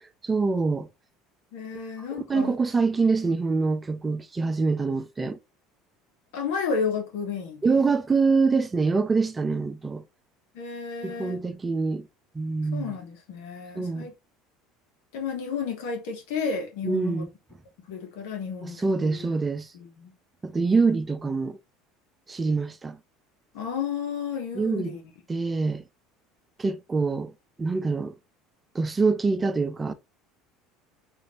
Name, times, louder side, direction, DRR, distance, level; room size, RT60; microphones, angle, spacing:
voice 1, 0.2-0.9 2.3-5.4 7.6-10.0 11.0-12.1 12.3-12.9 13.8-14.1 16.8-17.3 18.6-19.7 20.4-21.6 22.3-23.0 24.6-24.9 25.3-25.8 26.6-27.3 27.6-28.1 28.7-29.9, right 4 dB, 20° right, 0.5 m, -25 dB
voice 2, 1.5-2.6 6.3-7.8 10.5-11.4 12.7-14.1 15.1-17.3 17.9-19.3 19.7-20.1 23.5-25.0, left 6 dB, 75° left, 1.4 m, -32 dB
3.8 x 2.8 x 3.1 m
hypercardioid pair, 75°, 0 cm